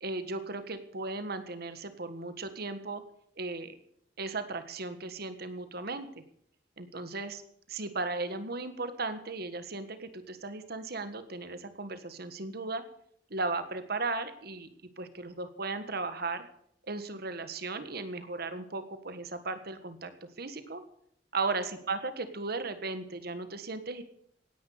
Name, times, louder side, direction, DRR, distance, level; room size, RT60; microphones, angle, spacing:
voice 1, 0.0-3.0 3.4-3.7 4.2-6.1 6.8-7.4 7.7-12.8 13.3-14.7 15.0-16.5 16.9-20.1 20.4-20.8 21.3-24.0, right 3 dB, 60° right, 10 dB, 1.6 m, -36 dB
17.5 x 10.5 x 6.6 m, 0.67 s
head